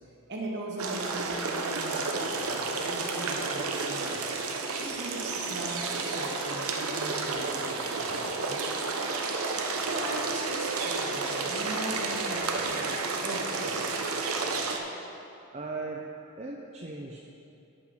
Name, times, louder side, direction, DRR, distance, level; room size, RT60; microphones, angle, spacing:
voice 1, 0.3-4.2 4.8-8.7 9.8-14.0, right 1 dB, 50° right, -3 dB, 1.6 m, -39 dB
sound 1, 0.8-14.8, right 4 dB, 90° right, 0.8 m, -31 dB
voice 2, 15.5-16.1 16.4-17.2, right 3 dB, 30° right, -2 dB, 0.5 m, -37 dB
8.9 x 5.7 x 6.3 m, 2.8 s
head